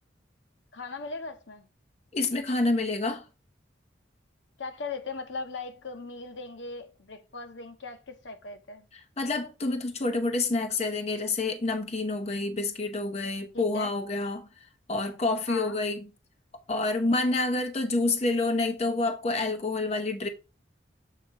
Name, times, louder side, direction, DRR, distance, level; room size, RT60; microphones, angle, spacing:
voice 1, 0.7-1.7 4.6-8.9 13.5-13.9 15.5-15.8, left 4 dB, 75° left, 0.9 m, -38 dB
voice 2, 2.1-3.2 9.2-14.5 14.9-16.0 16.7-20.3, left 2 dB, 35° left, 0.7 m, -28 dB
7.3 x 2.8 x 5.4 m
head